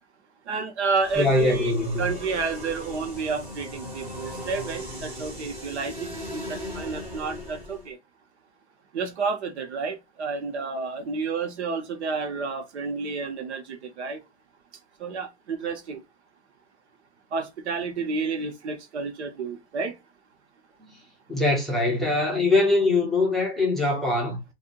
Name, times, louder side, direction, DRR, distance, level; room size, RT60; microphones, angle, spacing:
voice 1, 0.5-1.7 2.0-8.0 8.9-14.2 15.0-16.0 17.3-20.0, right 4 dB, 80° right, 1.2 m, -30 dB
sound 1, 1.0-7.9, equal, 20° right, 1.6 m, -38 dB
voice 2, 1.2-2.1 20.8-21.0 21.3-24.4, left 2 dB, ahead, 0.7 m, -23 dB
2.7 x 2.7 x 3.7 m
supercardioid pair, 160°, 33 cm